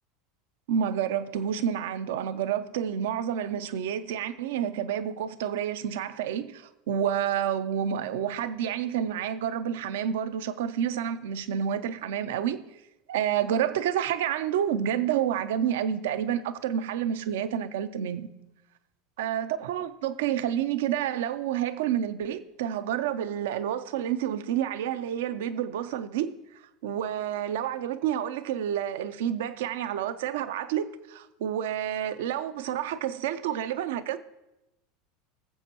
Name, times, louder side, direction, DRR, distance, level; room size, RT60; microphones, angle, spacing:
voice 1, 0.7-12.6 13.1-18.3 19.2-26.3 26.8-34.2, right 9 dB, 75° right, 0.6 m, -29 dB
19.5 x 7.4 x 2.9 m
hypercardioid pair, 85°, 0 cm